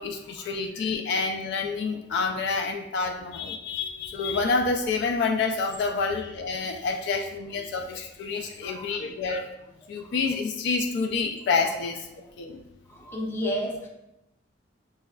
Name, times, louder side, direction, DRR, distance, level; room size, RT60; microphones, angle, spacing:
voice 1, 0.0-9.5 9.9-12.1 12.4-12.6, left 4 dB, 65° left, 5 dB, 0.3 m, -28 dB
voice 2, 12.9-13.9, equal, 15° left, -1 dB, 0.5 m, -32 dB
6.0 x 2.2 x 2.3 m, 0.87 s
head